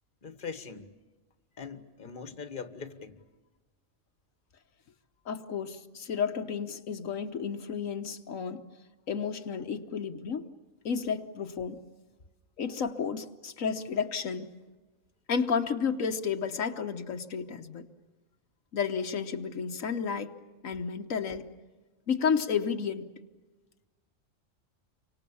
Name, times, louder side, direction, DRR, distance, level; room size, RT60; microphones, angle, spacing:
voice 1, 0.2-0.9 1.6-3.2 9.6-9.7, left 5 dB, 40° left, 10 dB, 1.6 m, -41 dB
voice 2, 5.3-8.6 9.1-10.4 10.8-11.8 12.6-14.5 15.3-17.8 18.7-20.3 20.6-21.5 22.1-23.1, left 6 dB, 85° left, 6 dB, 1.5 m, -31 dB
29.5 x 25.0 x 7.0 m, 1.2 s
omnidirectional pair, 1.3 m